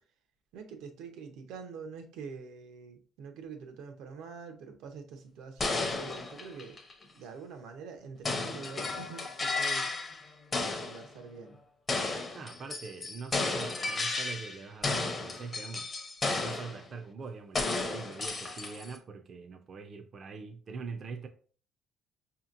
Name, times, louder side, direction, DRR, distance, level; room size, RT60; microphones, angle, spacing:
voice 1, 0.5-6.8 7.1-9.9 10.5-11.6, right 5 dB, 90° right, 0.7 m, -45 dB
sound 1, 5.6-7.0 8.2-10.2 10.5-11.0 11.9-14.6 14.8-16.8 17.6-19.0, left 3 dB, 25° left, 0.6 m, -33 dB
voice 2, 12.3-15.9 16.3-21.3, right 4 dB, 35° right, 0.3 m, -43 dB
5.1 x 2.8 x 2.5 m
cardioid pair, 160°, 0 cm